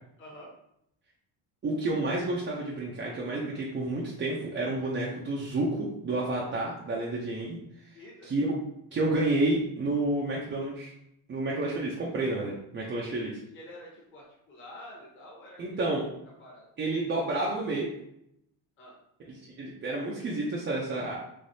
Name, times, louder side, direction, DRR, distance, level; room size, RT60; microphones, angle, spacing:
voice 1, 0.2-0.5 7.9-8.3 13.0-15.9 16.4-16.7 18.8-19.0, left 1 dB, 25° left, -4 dB, 0.9 m, -48 dB
voice 2, 1.6-8.0 8.3-8.6 8.9-10.9 11.3-13.3 15.6-16.1 16.8-17.9 19.3-21.2, right 2 dB, 25° right, -4 dB, 0.4 m, -30 dB
3.3 x 3.1 x 2.6 m, 0.78 s
cardioid pair, 120°, 47 cm